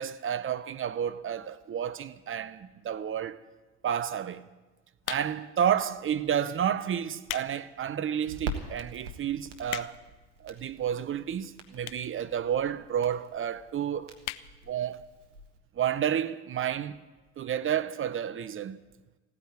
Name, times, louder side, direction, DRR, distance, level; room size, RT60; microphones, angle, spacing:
voice 1, 0.0-3.4 3.8-4.5 5.1-10.0 10.4-14.2 14.7-15.0 15.8-17.0 17.4-18.8, right 9 dB, 35° right, 0.9 m, -30 dB
sound 1, 5.0-5.6 6.3-6.5 7.0-7.5 8.0-8.1 8.7-8.8 9.0-9.1 9.3-10.2 11.0-11.1 11.8-12.2 12.5-12.6 12.7-12.8 13.1-13.2 13.5-13.7 14.2-14.5 14.9-15.0 15.2-15.3, left 16 dB, 65° left, 0.7 m, -37 dB
Crackle, 8.3-15.6, right 2 dB, 90° right, 1.4 m, -44 dB
16.0 x 9.6 x 9.4 m
hypercardioid pair, 60°, 35 cm